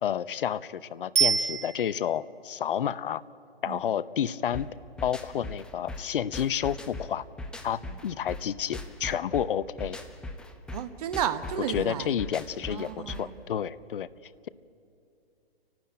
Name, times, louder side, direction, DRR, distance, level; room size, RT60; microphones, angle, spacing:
voice 1, 0.0-3.2 3.6-4.7 5.0-7.2 7.6-10.0 11.7-14.1, left 9 dB, 55° left, 18 dB, 0.7 m, -30 dB
Bicycle bell, 1.2-2.3 11.3-11.4, right 7 dB, 60° right, 2.6 m, -26 dB
sound 1, 4.5-13.4, left 2 dB, 5° left, 0.6 m, -40 dB
voice 2, 10.7-12.2 12.7-13.3, right 9 dB, 40° right, 12 dB, 1.1 m, -33 dB
29.5 x 12.0 x 8.7 m, 2.5 s
figure-of-eight pair, 130°, 31 cm